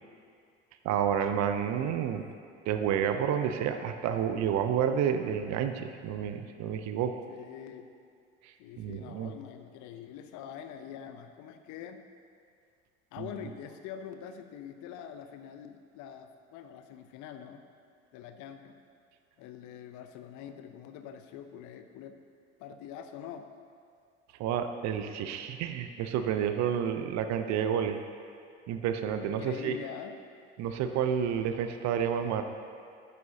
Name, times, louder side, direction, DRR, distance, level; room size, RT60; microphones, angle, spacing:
voice 1, 0.8-2.2 2.7-7.2 8.4-9.3 13.2-13.3 24.4-28.0 28.7-29.8 30.6-32.4, right 8 dB, 50° right, 8 dB, 0.7 m, -30 dB
voice 2, 7.3-7.9 8.6-12.0 13.1-17.6 18.1-18.8 19.4-22.2 22.6-23.5 29.2-30.2, left 9 dB, 55° left, 8 dB, 0.7 m, -44 dB
11.0 x 8.4 x 2.8 m, 2.3 s
hypercardioid pair, 65°, 36 cm